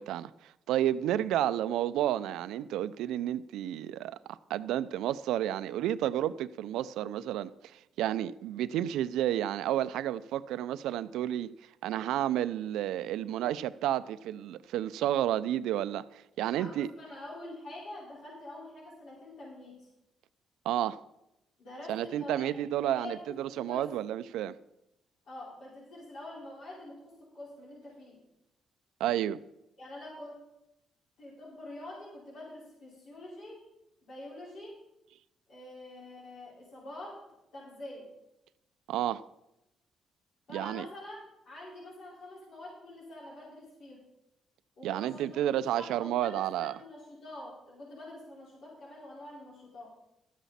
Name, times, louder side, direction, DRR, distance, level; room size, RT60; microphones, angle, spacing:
voice 1, 0.0-11.5 11.8-16.9 20.7-21.0 21.9-24.6 29.0-29.4 38.9-39.2 40.5-40.8 44.8-46.7, right 12 dB, 90° right, 0.4 m, -31 dB
voice 2, 16.5-19.9 21.6-22.5 22.8-23.2 23.5-23.9 25.3-28.2 29.8-30.4 31.2-33.7 34.0-34.8 35.5-37.2 37.5-38.1 40.5-44.0 44.8-45.4 45.8-49.9, left 1 dB, 65° left, 4.7 m, -46 dB
13.0 x 9.2 x 4.2 m
cardioid pair, 90°, 0 cm